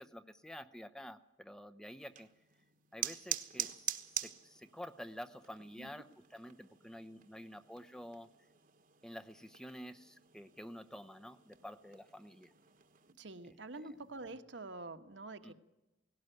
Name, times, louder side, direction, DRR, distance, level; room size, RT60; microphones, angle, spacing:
voice 1, 0.0-2.3 2.9-6.1 6.3-8.3 9.0-12.5 15.4-15.5, equal, 5° left, 10 dB, 0.7 m, -49 dB
sound 1, 2.0-13.1, right 10 dB, 45° right, 1.3 m, -46 dB
voice 2, 13.2-15.5, right 2 dB, 65° right, 7 dB, 1.4 m, -47 dB
19.0 x 17.0 x 9.1 m, 1.0 s
head